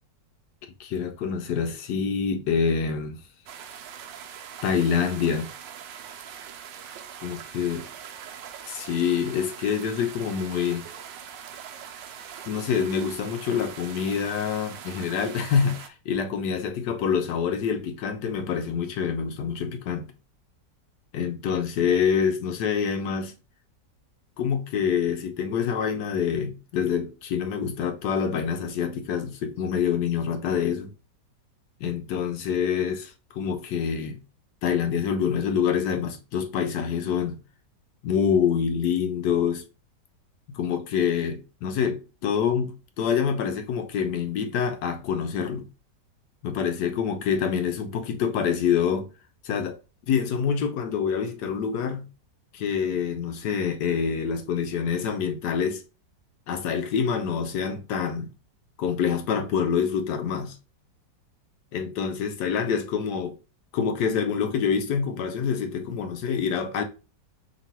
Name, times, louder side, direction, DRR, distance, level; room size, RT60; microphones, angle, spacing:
voice 1, 0.8-3.2 4.6-5.5 7.2-7.8 8.7-10.9 12.5-20.1 21.1-23.3 24.4-30.9 31.8-34.2 34.6-37.4 38.0-39.6 40.5-45.7 46.4-49.1 49.4-49.8 50.1-52.1 52.5-55.8 56.5-58.3 58.8-60.6 61.7-63.4 63.7-66.8, left 7 dB, 75° left, 1.1 m, -26 dB
sound 1, 3.5-15.9, right 8 dB, 85° right, 1.3 m, -42 dB
3.0 x 2.9 x 4.0 m
omnidirectional pair, 1.9 m